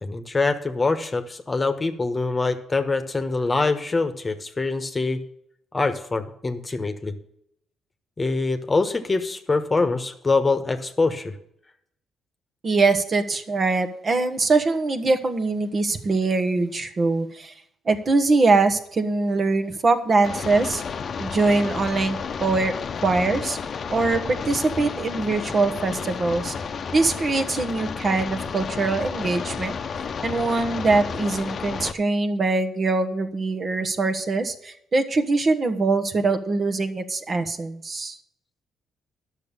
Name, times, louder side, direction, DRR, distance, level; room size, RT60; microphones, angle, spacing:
voice 1, 0.0-5.2 5.7-7.2 8.2-11.3, left 3 dB, 25° left, 9 dB, 1.2 m, -24 dB
voice 2, 12.6-17.5 17.9-20.8 21.2-22.7 23.0-23.6 23.9-26.5 26.9-29.8 30.2-38.2, right 3 dB, 40° right, 7 dB, 1.2 m, -23 dB
sound 1, 20.2-31.9, left 6 dB, 50° left, 0.8 m, -32 dB
10.5 x 6.7 x 6.9 m, 0.75 s
cardioid pair, 90°, 0 cm